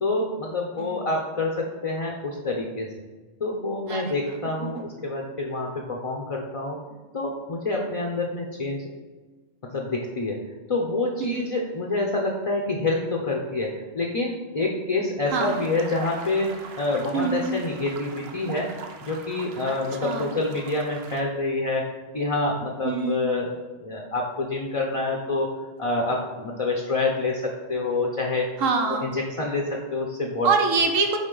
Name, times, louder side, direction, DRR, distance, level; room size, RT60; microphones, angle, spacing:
voice 1, 0.0-2.9 3.4-6.8 7.1-8.9 9.7-10.4 10.7-18.7 19.0-23.5 23.8-25.5 25.8-28.5 29.0-30.5, left 2 dB, 35° left, 0 dB, 0.5 m, -27 dB
voice 2, 11.2-11.6 15.3-15.7 17.1-17.6 19.7-20.3 22.8-23.2 28.6-29.1 30.4-31.2, right 4 dB, 85° right, 4 dB, 1.2 m, -25 dB
sound 1, 15.3-21.2, right 5 dB, 60° right, 0.8 m, -42 dB
9.3 x 3.6 x 3.9 m, 1.3 s
omnidirectional pair, 1.3 m